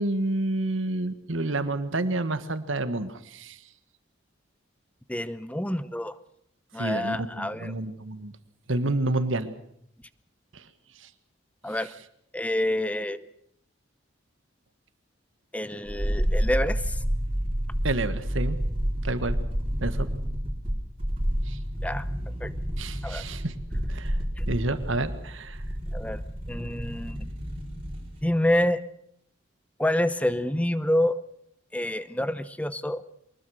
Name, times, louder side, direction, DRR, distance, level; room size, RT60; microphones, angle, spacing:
voice 1, 0.0-3.6 6.8-8.3 8.7-9.6 10.5-10.6 17.8-18.6 19.0-19.4 19.8-20.1 21.5-21.6 22.8-23.5 23.9-24.2 24.5-25.6, right 2 dB, 75° right, 12 dB, 1.6 m, -29 dB
voice 2, 5.1-6.2 6.7-7.7 11.6-11.9 12.3-13.2 15.5-17.0 21.8-22.1 22.4-22.5 23.0-23.2 24.4-24.5 25.9-26.2 26.5-27.2 28.2-28.8 29.8-31.2 31.7-33.0, left 1 dB, 5° left, 15 dB, 0.8 m, -27 dB
sound 1, 15.9-28.2 28.5-28.6, equal, 30° right, 4.3 m, -30 dB
24.0 x 20.5 x 6.5 m, 0.71 s
head